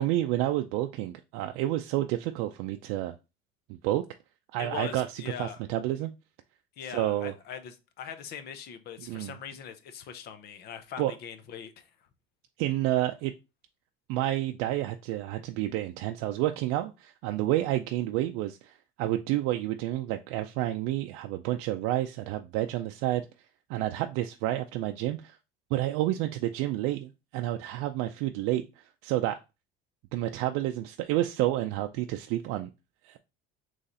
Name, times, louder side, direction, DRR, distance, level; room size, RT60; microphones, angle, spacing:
voice 1, 0.0-3.2 3.8-4.0 4.5-6.1 6.8-7.3 9.1-9.3 11.0-11.1 12.6-13.3 14.1-23.2 23.7-25.4 25.7-28.7 29.0-29.4 30.1-32.7 33.0-33.2, right 14 dB, 90° right, 0.4 m, -29 dB
voice 2, 4.6-5.6 6.8-11.9, left 8 dB, 50° left, 0.7 m, -41 dB
4.1 x 3.2 x 3.8 m
cardioid pair, 155°, 21 cm